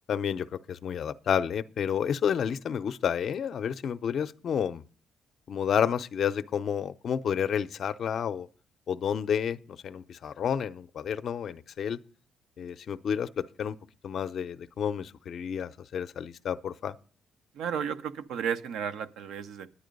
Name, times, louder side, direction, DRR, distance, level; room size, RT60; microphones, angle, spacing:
voice 1, 0.1-4.8 5.5-8.5 8.9-12.0 12.6-13.8 14.0-16.9, left 8 dB, 60° left, 0.5 m, -30 dB
voice 2, 17.5-19.7, right 7 dB, 85° right, 0.7 m, -33 dB
10.0 x 9.3 x 5.2 m
cardioid pair, 90°, 0 cm